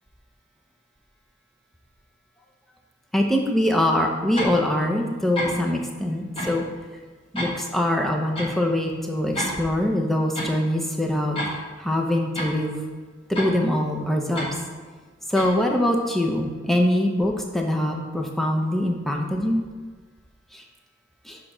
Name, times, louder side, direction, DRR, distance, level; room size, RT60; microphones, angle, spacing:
voice 1, 3.1-6.6 7.3-12.8 13.3-14.5 15.3-19.6 20.5-20.6 21.3-21.4, left 1 dB, ahead, 1 dB, 0.7 m, -23 dB
sound 1, 4.4-4.6 5.4-5.6 6.4-6.6 7.4-7.5 8.4-8.5 9.4-9.6 10.4-10.5 11.4-11.5 12.4-12.5 13.4-13.5 14.4-14.5 15.4-15.5, equal, 30° left, 1.5 m, -29 dB
6.7 x 3.9 x 6.1 m, 1.4 s
head